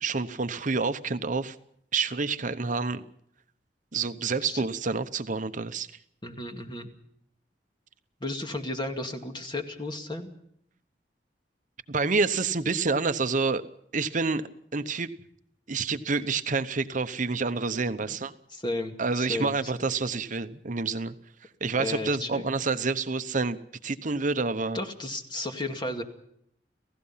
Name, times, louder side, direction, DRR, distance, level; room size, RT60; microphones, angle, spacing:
voice 1, 0.0-1.6 1.9-3.0 3.9-5.9 11.9-13.6 13.9-15.1 15.7-18.3 19.0-21.1 21.6-24.8, right 4 dB, 45° right, 10 dB, 0.9 m, -28 dB
voice 2, 6.2-6.9 8.2-10.3 18.1-18.2 18.5-19.9 21.8-22.4 24.7-26.0, left 2 dB, 25° left, 5 dB, 2.2 m, -34 dB
29.5 x 16.0 x 5.7 m, 0.72 s
head